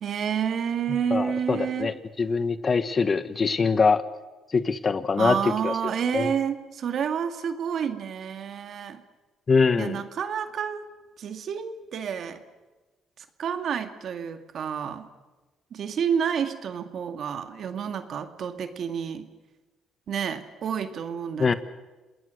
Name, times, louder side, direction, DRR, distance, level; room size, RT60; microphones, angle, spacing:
voice 1, 0.0-1.9 5.2-9.0 9.8-10.8 11.2-12.4 13.2-15.1 15.7-19.3 20.1-21.5, right 7 dB, 65° right, 8 dB, 1.9 m, -29 dB
voice 2, 1.1-4.0 4.5-6.3 9.5-10.0 21.4-21.5, left 4 dB, 40° left, 13 dB, 1.2 m, -24 dB
28.5 x 19.5 x 6.5 m, 1.2 s
cardioid pair, 80°, 0 cm